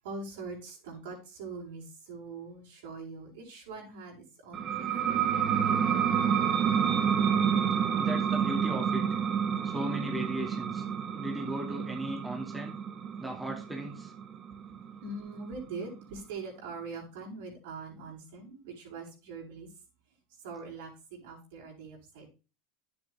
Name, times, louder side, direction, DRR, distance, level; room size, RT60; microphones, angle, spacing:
voice 1, 0.0-6.0 15.0-19.7 20.4-22.3, right 4 dB, 75° right, -2 dB, 6.3 m, -43 dB
sound 1, 4.5-15.8, right 7 dB, 35° right, 1.4 m, -29 dB
voice 2, 7.9-9.0 9.6-10.8 11.1-12.8 13.2-14.1, equal, 5° right, 0 dB, 2.6 m, -37 dB
10.5 x 8.2 x 3.7 m, 0.31 s
supercardioid pair, 110°, 0 cm